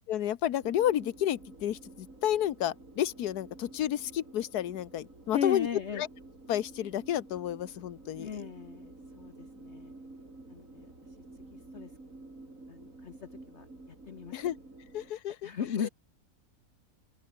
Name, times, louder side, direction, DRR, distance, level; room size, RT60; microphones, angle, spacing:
voice 1, 0.1-5.7 6.0-6.1 6.5-8.3 14.3-14.6 14.9-15.5, left 11 dB, 85° left, 1.4 m, -31 dB
sound 1, 0.6-15.1, right 2 dB, 60° right, 5.4 m, -51 dB
voice 2, 5.3-6.0 8.2-9.9 10.5-10.9 11.5-11.9 12.7-14.4 15.4-15.9, left 7 dB, 50° left, 1.2 m, -37 dB
open air
omnidirectional pair, 1.6 m